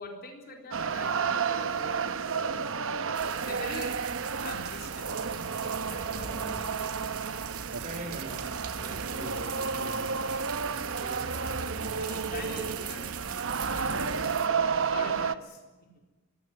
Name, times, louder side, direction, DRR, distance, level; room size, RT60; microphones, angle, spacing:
voice 1, 0.0-2.2 2.6-4.0 4.4-5.1 5.9-7.2 11.9-14.4 14.9-16.0, left 2 dB, 45° left, 3 dB, 4.1 m, -44 dB
sound 1, 0.7-15.3, right 5 dB, 60° right, 1.0 m, -32 dB
sound 2, 3.1-14.5, right 6 dB, 85° right, 2.3 m, -40 dB
voice 2, 5.5-6.7 7.8-12.0, right 1 dB, 35° right, 5 dB, 4.9 m, -44 dB
24.5 x 17.0 x 9.5 m, 1.2 s
head